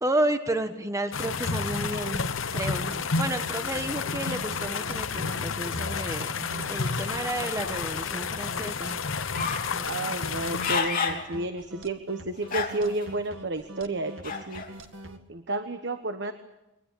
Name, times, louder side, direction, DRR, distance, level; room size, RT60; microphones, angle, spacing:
voice 1, 0.0-2.2 2.5-6.3 6.6-8.9, right 1 dB, 15° right, 7 dB, 1.2 m, -31 dB
sound 1, 1.1-10.8, left 5 dB, 85° left, 1.0 m, -31 dB
sound 2, 1.8-15.2, right 1 dB, 80° right, 2.0 m, -43 dB
sound 3, 9.3-9.7 10.3-11.2 11.7-11.8 12.4-13.0 14.2-14.7, left 5 dB, 45° left, 3.4 m, -29 dB
voice 2, 9.9-14.6 15.3-16.3, right 2 dB, 60° right, 8 dB, 1.3 m, -31 dB
23.5 x 20.0 x 8.5 m, 0.95 s
head